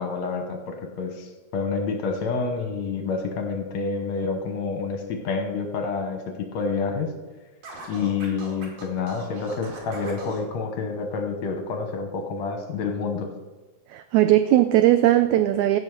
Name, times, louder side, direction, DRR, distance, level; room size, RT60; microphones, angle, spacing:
voice 1, 0.0-7.1 7.9-13.3, left 4 dB, 65° left, 5 dB, 2.0 m, -28 dB
Scratching (performance technique), 7.6-10.4, right 3 dB, 65° right, 4.0 m, -40 dB
voice 2, 13.9-15.8, right 13 dB, 85° right, 11 dB, 1.6 m, -18 dB
16.0 x 5.5 x 6.5 m, 1.2 s
omnidirectional pair, 3.8 m